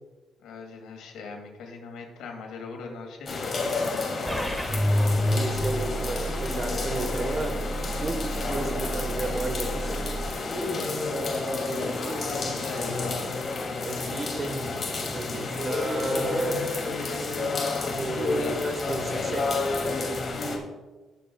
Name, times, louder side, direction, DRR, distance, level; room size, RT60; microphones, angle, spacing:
voice 1, 0.4-4.5 11.7-13.3 18.4-18.6, left 3 dB, 85° left, 2 dB, 2.4 m, -39 dB
sound 1, 3.3-20.6, left 3 dB, 40° left, 2.7 m, -30 dB
sound 2, 4.3-10.3, equal, 5° right, 1.0 m, -29 dB
voice 2, 5.3-7.5 7.8-10.1 11.6-12.2 13.8-14.7 15.0-16.7 18.0-19.5, right 2 dB, 35° right, 7 dB, 1.3 m, -33 dB
20.5 x 7.6 x 2.4 m, 1.2 s
cardioid pair, 90°, 0 cm